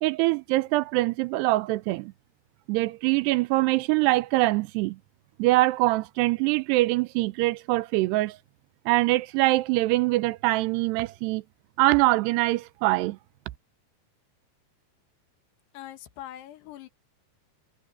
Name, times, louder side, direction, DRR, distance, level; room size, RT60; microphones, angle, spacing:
voice 1, 0.0-2.1 2.7-5.0 5.4-8.4 8.9-11.4 11.8-13.2, right 19 dB, 85° right, 2.7 m, -23 dB
voice 2, 15.7-16.9, left 12 dB, 80° left, 3.4 m, -42 dB
omnidirectional pair, 4.8 m